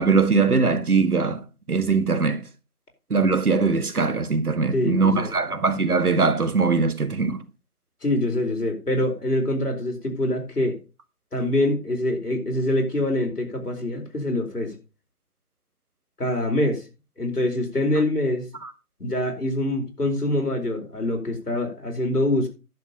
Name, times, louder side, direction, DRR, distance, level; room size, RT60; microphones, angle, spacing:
voice 1, 0.0-1.4 1.7-2.4 3.1-7.4 18.6-18.7, right 4 dB, 75° right, 1.8 m, -21 dB
voice 2, 4.7-5.3 8.0-10.8 11.3-14.8 16.2-16.8 17.2-18.5 19.0-22.5, left 1 dB, 90° left, 4.5 m, -25 dB
11.0 x 6.9 x 5.5 m
figure-of-eight pair, 170°, 45 cm